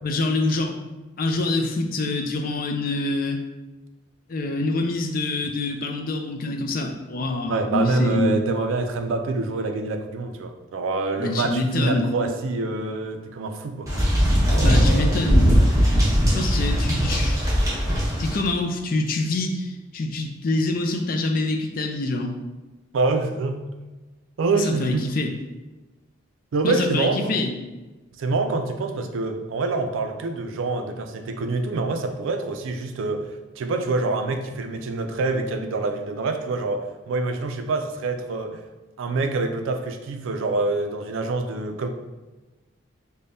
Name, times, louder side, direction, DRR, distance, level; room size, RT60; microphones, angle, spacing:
voice 1, 0.0-0.7 1.2-3.4 4.3-8.3 11.2-12.1 14.6-15.5 16.3-17.5 18.2-22.3 24.5-25.3 26.6-27.6, left 2 dB, 45° left, 3 dB, 0.4 m, -25 dB
voice 2, 7.5-13.9 14.4-15.2 22.9-23.7 24.4-25.1 26.5-27.4 28.2-38.6 39.0-41.9, right 3 dB, 70° right, 6 dB, 0.4 m, -26 dB
sound 1, 13.9-18.3, equal, 15° right, 0.9 m, -19 dB
5.1 x 2.2 x 2.7 m, 1.2 s
head